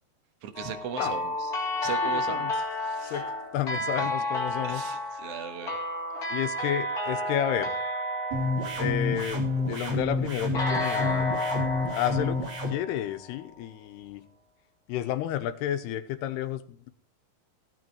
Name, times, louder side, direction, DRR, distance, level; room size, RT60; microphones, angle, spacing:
voice 1, 0.4-1.5 1.8-2.5 2.8-3.2 4.0-4.1 4.6-5.8, right 8 dB, 70° right, 7 dB, 1.5 m, -38 dB
sound 1, 0.5-9.8 10.5-13.4, left 1 dB, 25° left, 3.5 m, -32 dB
voice 2, 2.0-2.5 3.0-4.8 6.2-7.8 8.8-11.3 11.9-12.4 12.7-14.2 14.9-16.9, left 11 dB, 90° left, 10 dB, 3.0 m, -31 dB
sound 2, 8.3-12.7, left 3 dB, 45° right, 4.1 m, -29 dB
15.5 x 9.4 x 4.6 m, 0.43 s
omnidirectional pair, 4.7 m